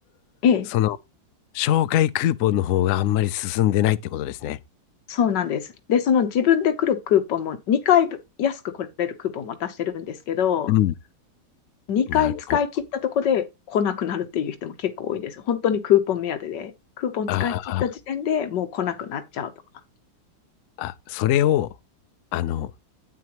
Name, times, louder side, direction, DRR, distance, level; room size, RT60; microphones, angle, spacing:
voice 1, 1.5-4.6 10.7-10.9 12.1-12.6 17.3-17.8 20.8-21.7 22.3-22.7, left 13 dB, 90° left, 0.7 m, -22 dB
voice 2, 5.1-10.7 11.9-16.7 17.0-17.5 17.8-19.5, left 9 dB, 65° left, 1.6 m, -23 dB
9.2 x 8.7 x 3.0 m
omnidirectional pair, 2.0 m